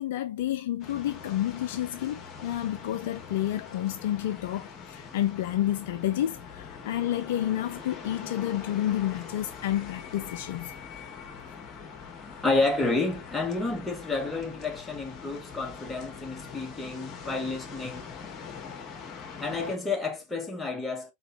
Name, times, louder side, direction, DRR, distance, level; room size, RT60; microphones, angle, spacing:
voice 1, 0.0-10.7, left 12 dB, 55° left, 0.4 m, -30 dB
sound 1, 0.8-19.8, left 6 dB, 30° left, 1.6 m, -43 dB
voice 2, 12.4-18.0 19.4-21.1, left 3 dB, 10° left, 1.6 m, -30 dB
4.6 x 3.9 x 2.9 m
figure-of-eight pair, 90°, 0 cm